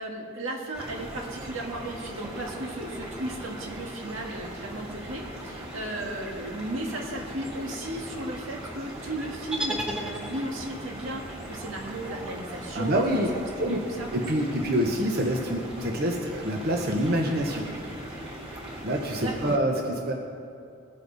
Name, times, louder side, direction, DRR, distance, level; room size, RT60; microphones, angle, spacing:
voice 1, 0.0-13.1 13.6-14.1 19.2-19.3, right 1 dB, 90° right, 0 dB, 2.0 m, -35 dB
sound 1, 0.7-19.6, right 1 dB, 30° right, 3.5 m, -40 dB
sound 2, 9.5-10.8, right 1 dB, 5° right, 1.0 m, -33 dB
voice 2, 12.7-13.3 13.6-13.8 14.1-17.7 18.8-20.1, right 1 dB, 50° right, 1 dB, 1.0 m, -26 dB
21.0 x 8.5 x 4.1 m, 2.5 s
head